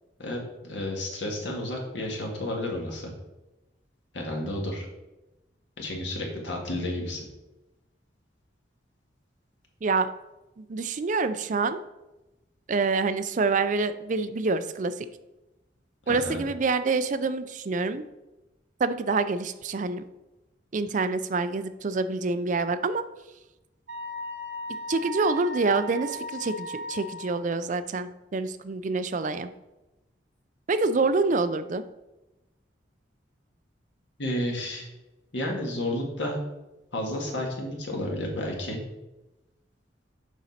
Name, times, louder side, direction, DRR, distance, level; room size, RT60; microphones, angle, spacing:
voice 1, 0.2-3.1 4.1-4.9 5.8-7.2 16.1-16.4 34.2-34.9 35.3-36.4 36.9-38.8, left 1 dB, 75° left, 0 dB, 1.8 m, -31 dB
voice 2, 10.6-11.8 12.7-14.9 16.1-18.0 18.8-20.0 20.7-23.0 24.9-29.5 30.7-31.8, right 3 dB, 45° right, 11 dB, 0.4 m, -26 dB
Wind instrument woodwind instrument, 23.9-27.4, equal, 85° right, 1.8 m, -36 dB
7.2 x 5.1 x 4.2 m, 1.0 s
head